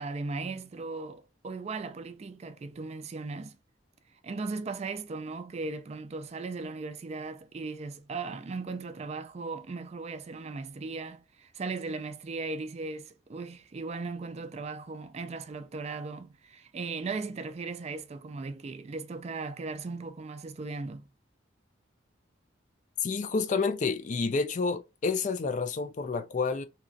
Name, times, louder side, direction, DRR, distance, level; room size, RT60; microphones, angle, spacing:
voice 1, 0.0-3.6 4.2-21.0, right 3 dB, 35° right, 0.3 m, -37 dB
voice 2, 23.0-26.6, left 4 dB, 40° left, 0.4 m, -29 dB
3.0 x 2.4 x 2.5 m
head